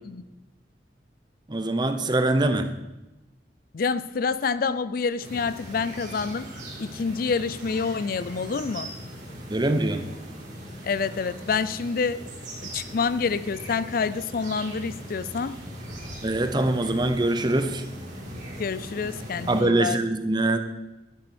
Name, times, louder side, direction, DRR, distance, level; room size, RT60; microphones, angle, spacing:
voice 1, 1.5-2.7 9.5-10.1 16.2-17.8 19.5-20.6, right 2 dB, 25° right, 8 dB, 0.8 m, -23 dB
voice 2, 3.7-6.5 6.8-8.9 10.8-12.2 12.7-15.5 18.6-20.0, left 5 dB, 55° left, 15 dB, 0.4 m, -27 dB
sound 1, 5.2-19.6, right 1 dB, 45° right, 3.4 m, -40 dB
11.0 x 10.5 x 4.3 m, 1.0 s
head